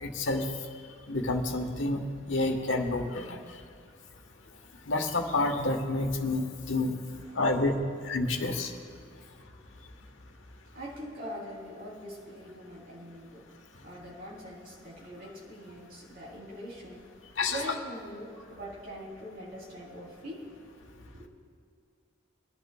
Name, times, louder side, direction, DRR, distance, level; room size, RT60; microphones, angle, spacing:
voice 1, 0.0-0.4 1.1-2.0 2.3-3.4 4.9-6.9 7.4-7.8 8.1-8.7 17.4-17.6, left 2 dB, 75° left, 3 dB, 1.3 m, -28 dB
voice 2, 7.1-7.9 10.7-17.1 17.5-20.5 20.8-21.3, equal, 50° right, -5 dB, 3.4 m, -43 dB
26.0 x 11.0 x 2.3 m, 2.2 s
head